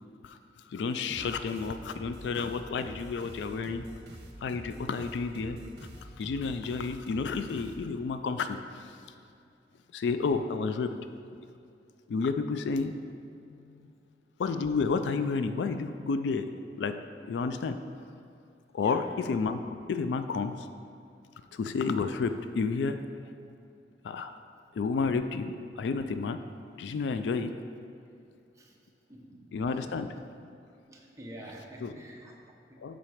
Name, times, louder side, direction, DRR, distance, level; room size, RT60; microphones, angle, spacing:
voice 1, 0.7-3.8 4.4-5.6 6.2-8.9 9.9-10.9 12.1-12.9 13.5-13.9 14.4-16.5 16.8-17.0 17.3-17.8 18.7-19.0 19.3-19.6 19.9-20.5 21.5-23.0 24.0-24.3 24.8-26.4 26.8-27.5 29.5-30.1 31.8-31.9 32.8-33.0, left 4 dB, 80° left, 10 dB, 0.3 m, -31 dB
sound 1, 1.1-8.2, right 1 dB, 65° right, 0.9 m, -47 dB
voice 2, 18.8-19.1 23.7-23.8 28.2-28.8 29.1-29.4 29.8-29.9 30.8-32.8, right 1 dB, 15° right, -1 dB, 0.8 m, -48 dB
7.4 x 4.0 x 4.9 m, 2.5 s
head